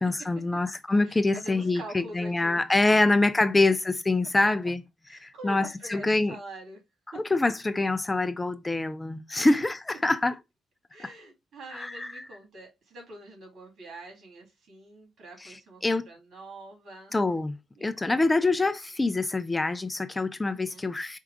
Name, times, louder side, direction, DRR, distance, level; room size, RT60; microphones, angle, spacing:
voice 1, 0.0-4.8 5.1-6.4 7.1-10.4 11.0-11.1 11.7-12.3 15.4-15.5 15.8-16.1 17.1-21.2, left 2 dB, 15° left, 0.4 m, -25 dB
voice 2, 1.0-2.6 5.1-6.8 7.1-7.2 9.4-9.6 10.1-10.2 10.9-17.2 17.8-18.5 20.5-20.9, right 1 dB, 65° right, 2.4 m, -45 dB
4.5 x 2.4 x 4.8 m
cardioid pair, 90°, 0 cm